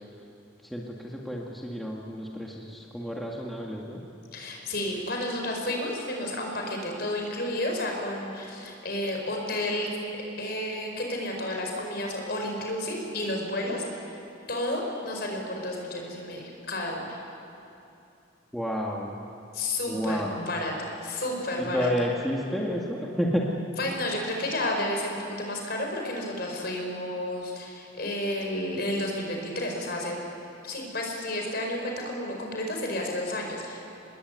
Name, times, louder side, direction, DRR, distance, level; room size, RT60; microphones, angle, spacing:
voice 1, 0.6-4.0 18.5-19.2 19.9-20.4 21.6-23.5, equal, ahead, -3 dB, 1.9 m, -30 dB
voice 2, 4.3-9.9 10.4-14.2 14.5-17.2 19.5-21.9 23.8-30.2 30.6-33.8, left 1 dB, 50° left, 1 dB, 5.2 m, -31 dB
26.0 x 20.5 x 9.6 m, 2.7 s
head